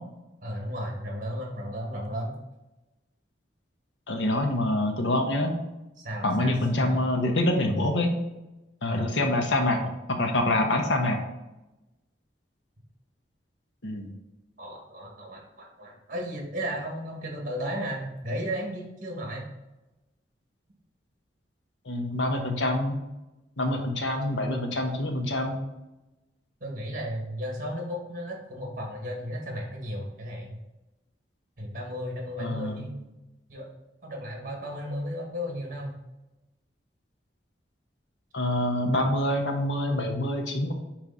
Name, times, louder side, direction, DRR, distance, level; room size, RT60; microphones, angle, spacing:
voice 1, 0.4-2.4 6.0-7.0 8.9-9.1 14.6-19.5 26.6-30.6 31.6-33.1 33.5-33.7 34.0-36.0, equal, 50° right, 0 dB, 1.9 m, -34 dB
voice 2, 4.1-5.5 6.2-8.1 8.8-9.8 10.1-11.2 13.8-14.1 21.9-23.0 23.6-25.6 32.4-32.9 38.3-40.7, left 1 dB, 85° left, 3 dB, 1.1 m, -26 dB
8.8 x 3.4 x 4.0 m, 1.0 s
head